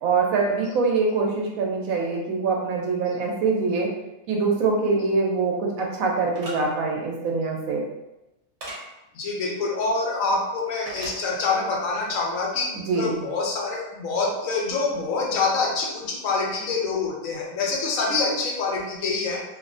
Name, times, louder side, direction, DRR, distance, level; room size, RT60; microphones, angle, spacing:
voice 1, 0.0-3.9 4.3-7.8 12.7-13.1, right 4 dB, 85° right, 0 dB, 1.0 m, -24 dB
sound 1, 6.3-6.6 8.6-8.8 10.9-11.2, right 1 dB, 65° right, 1.0 m, -36 dB
voice 2, 9.1-19.4, left 3 dB, 75° left, -1 dB, 1.0 m, -26 dB
2.7 x 2.0 x 2.4 m, 0.96 s
omnidirectional pair, 1.4 m